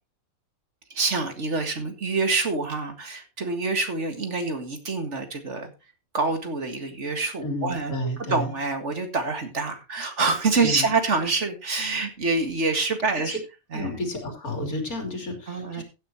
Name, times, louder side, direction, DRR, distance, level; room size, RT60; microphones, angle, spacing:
voice 1, 0.9-5.7 6.1-7.9 8.2-13.4 13.7-14.0 15.5-15.8, right 3 dB, 55° right, 6 dB, 2.1 m, -26 dB
voice 2, 7.4-8.5 10.6-10.9 13.2-13.4 13.7-15.8, left 1 dB, 90° left, 3 dB, 3.6 m, -31 dB
16.0 x 9.0 x 2.9 m, 0.28 s
omnidirectional pair, 1.5 m